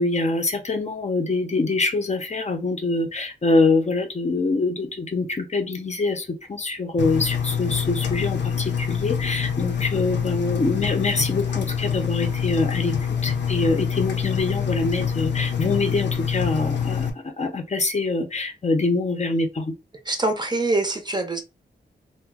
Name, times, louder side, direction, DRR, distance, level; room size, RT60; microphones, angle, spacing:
voice 1, 0.0-12.9 13.2-17.1 17.4-19.7, left 3 dB, 40° left, 0.6 m, -24 dB
Engine, 7.0-17.1, left 7 dB, 85° left, 0.6 m, -26 dB
voice 2, 20.1-21.4, right 2 dB, 25° right, 0.6 m, -24 dB
2.9 x 2.1 x 3.5 m
wide cardioid pair, 105°, 18 cm